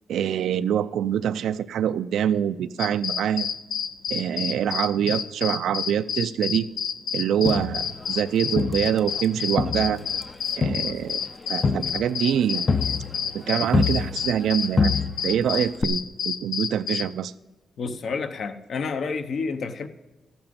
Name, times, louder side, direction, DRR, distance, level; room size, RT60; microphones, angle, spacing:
voice 1, 0.1-3.5 4.1-6.7 7.1-10.0 10.6-11.2 11.5-12.7 13.3-15.0 15.2-17.3, right 9 dB, 90° right, 13 dB, 0.4 m, -25 dB
sound 1, 2.8-17.1, left 8 dB, 85° left, 0.6 m, -29 dB
Crowd, 7.5-9.3 9.6-14.5 14.8-15.4 15.8-15.9, left 4 dB, 25° left, 0.5 m, -27 dB
voice 2, 17.8-19.9, left 4 dB, 55° left, 9 dB, 0.8 m, -29 dB
13.5 x 9.0 x 5.3 m, 1.1 s
wide cardioid pair, 145°, 0 cm